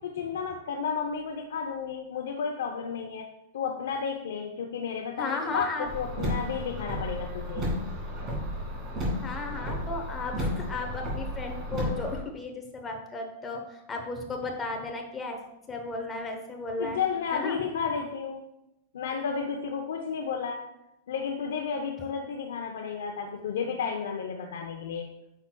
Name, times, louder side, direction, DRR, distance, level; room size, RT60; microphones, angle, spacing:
voice 1, 0.0-3.3 3.5-7.7 16.8-18.5 18.9-20.7 21.1-25.1, left 6 dB, 85° left, 3 dB, 0.6 m, -32 dB
voice 2, 5.2-5.9 9.2-15.4 15.7-17.0 17.3-17.6, left 3 dB, 10° left, 2 dB, 0.8 m, -34 dB
Car, 5.9-12.2, equal, 25° right, 2.0 m, -33 dB
8.8 x 5.8 x 2.3 m, 0.88 s
supercardioid pair, 165°, 0 cm